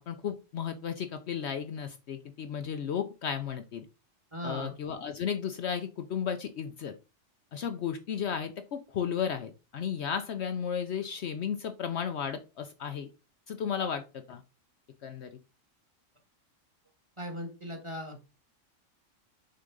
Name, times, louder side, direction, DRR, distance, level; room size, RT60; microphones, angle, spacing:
voice 1, 0.1-3.8 4.4-6.9 7.5-13.1 13.5-14.4 15.0-15.3, left 7 dB, 65° left, 8 dB, 0.8 m, -34 dB
voice 2, 4.3-4.7 17.2-18.3, equal, 25° right, 4 dB, 1.5 m, -38 dB
6.6 x 3.9 x 3.7 m, 0.30 s
omnidirectional pair, 1.4 m